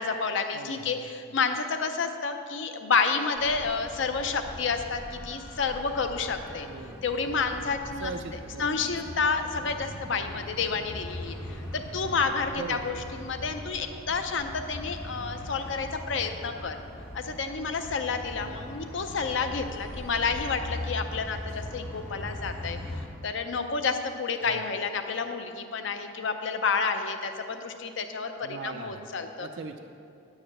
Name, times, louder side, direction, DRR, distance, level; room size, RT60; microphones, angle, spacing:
voice 1, 0.0-6.7 7.0-8.1 8.6-16.8 17.1-22.8 23.2-29.5, left 5 dB, 65° left, 7 dB, 0.5 m, -30 dB
voice 2, 0.5-1.0 6.7-7.1 8.0-8.9 10.1-10.3 11.9-12.3 12.5-13.0 18.4-18.8 24.4-24.6 28.4-29.8, right 4 dB, 60° right, 6 dB, 0.4 m, -41 dB
sound 1, 3.3-23.1, left 1 dB, 15° left, 1.6 m, -40 dB
9.7 x 4.9 x 7.4 m, 2.5 s
head